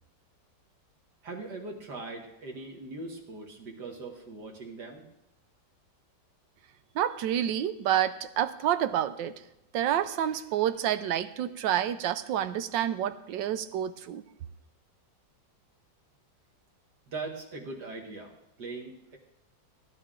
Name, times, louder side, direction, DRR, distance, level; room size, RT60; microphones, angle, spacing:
voice 1, 1.2-5.0 17.1-19.2, right 3 dB, 65° right, 0 dB, 2.2 m, -40 dB
voice 2, 6.9-9.3 9.7-14.2, right 10 dB, 85° right, 13 dB, 1.4 m, -28 dB
17.0 x 11.0 x 3.8 m, 0.87 s
omnidirectional pair, 2.0 m